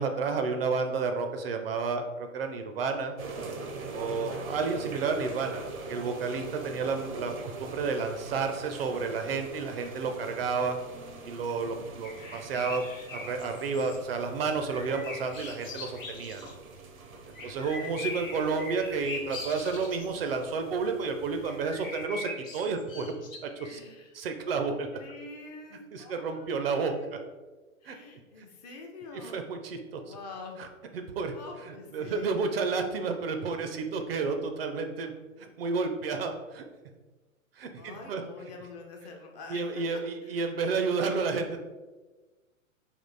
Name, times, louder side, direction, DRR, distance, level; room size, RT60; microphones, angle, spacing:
voice 1, 0.0-3.1 3.9-5.6 5.9-7.3 7.6-10.8 11.2-12.8 13.1-16.4 17.3-23.8 24.1-24.9 25.9-26.9 27.8-28.0 29.2-30.1 30.6-30.7 30.9-31.3 31.9-35.1 35.4-36.6 37.6-38.2 39.5-41.6, right 4 dB, 45° right, 6 dB, 0.4 m, -31 dB
sound 1, 3.2-22.1, right 3 dB, 85° right, 0.7 m, -43 dB
sound 2, 12.0-14.0 14.6-16.5 17.3-20.3 21.3-23.8, left 3 dB, 75° left, 0.9 m, -42 dB
voice 2, 17.4-18.3 23.7-24.2 24.4-27.3 27.8-29.4 30.0-30.7 31.3-32.3 37.8-40.4, left 3 dB, 30° left, 1 dB, 0.5 m, -46 dB
3.6 x 2.4 x 3.8 m, 1.2 s
figure-of-eight pair, 115°, 41 cm